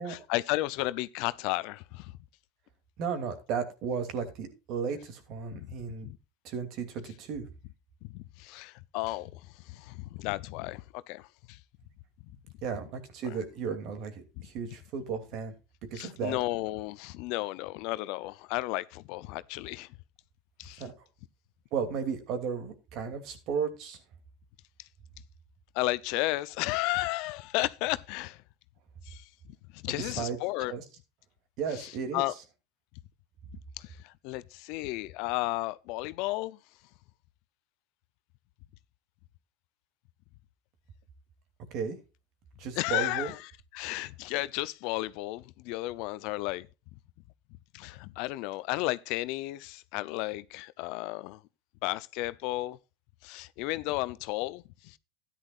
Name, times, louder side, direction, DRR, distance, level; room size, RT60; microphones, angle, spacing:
voice 1, 0.0-2.1 5.5-5.7 6.0-6.2 8.0-11.6 14.4-14.5 15.9-19.9 20.6-20.8 25.7-28.4 29.1-29.3 29.7-30.7 31.7-32.3 33.8-36.6 42.8-46.7 47.7-51.4 51.8-52.8 53.2-55.0, left 19 dB, 65° left, 0.6 m, -33 dB
voice 2, 3.0-6.1 6.4-7.5 12.6-15.5 15.9-16.4 20.8-20.9 21.7-24.0 29.9-30.4 30.7-30.8 31.6-32.2 41.7-42.0 42.6-43.3, right 6 dB, 55° right, 2.7 m, -34 dB
13.0 x 10.0 x 2.5 m
hypercardioid pair, 95°, 0 cm